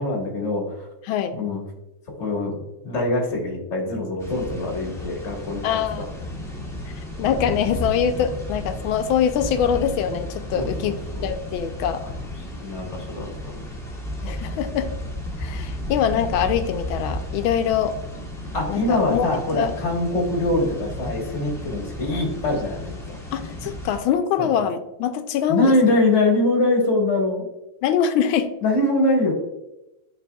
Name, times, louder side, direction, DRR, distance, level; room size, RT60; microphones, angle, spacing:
voice 1, 0.0-0.9 1.3-1.6 2.2-2.6 2.8-5.6 6.6-6.7 10.5-11.3 12.6-14.0 18.5-23.2 24.4-24.5 25.5-27.4 28.6-29.3, left 2 dB, 35° left, -1 dB, 1.6 m, -23 dB
voice 2, 1.0-1.4 5.6-6.1 7.2-12.0 14.2-14.9 15.4-18.0 18.7-19.7 23.3-25.9 27.8-28.5, left 8 dB, 80° left, 9 dB, 1.3 m, -24 dB
sound 1, 4.2-24.0, equal, ahead, 1.5 m, -33 dB
11.0 x 4.0 x 2.3 m, 0.94 s
omnidirectional pair, 2.3 m